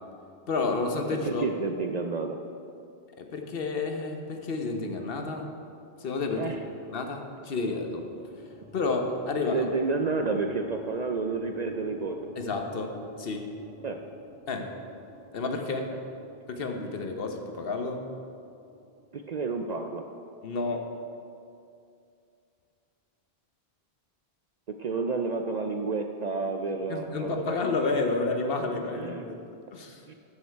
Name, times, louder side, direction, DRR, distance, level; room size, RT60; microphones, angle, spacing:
voice 1, 0.5-1.4 3.2-5.5 6.0-6.6 6.9-8.1 8.7-9.7 12.4-13.5 14.5-14.7 15.3-15.9 16.5-18.1 20.4-20.9 26.9-30.0, left 3 dB, 65° left, 4 dB, 1.0 m, -30 dB
voice 2, 1.2-2.4 6.4-6.6 9.5-12.3 13.8-14.0 19.1-20.1 24.8-27.6 29.0-29.2 30.1-30.2, right 4 dB, 55° right, 4 dB, 0.5 m, -30 dB
sound 1, 7.9-20.1, right 1 dB, 10° right, 1.1 m, -51 dB
12.5 x 5.6 x 4.6 m, 2.5 s
omnidirectional pair, 1.1 m